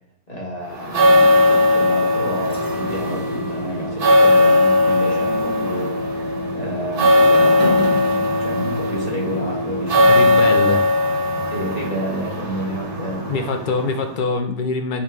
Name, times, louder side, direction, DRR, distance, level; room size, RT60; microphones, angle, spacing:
voice 1, 0.3-8.0 8.4-10.4 11.5-13.5, equal, 30° left, -4 dB, 1.5 m, -30 dB
sound 1, 0.7-14.3, left 1 dB, 40° right, 1.2 m, -18 dB
sound 2, 2.4-5.5 5.9-6.0, left 2 dB, 45° left, 2.0 m, -40 dB
voice 2, 10.1-10.9 13.3-15.0, left 3 dB, 70° left, 5 dB, 0.4 m, -24 dB
8.0 x 3.4 x 3.5 m, 0.67 s
omnidirectional pair, 1.5 m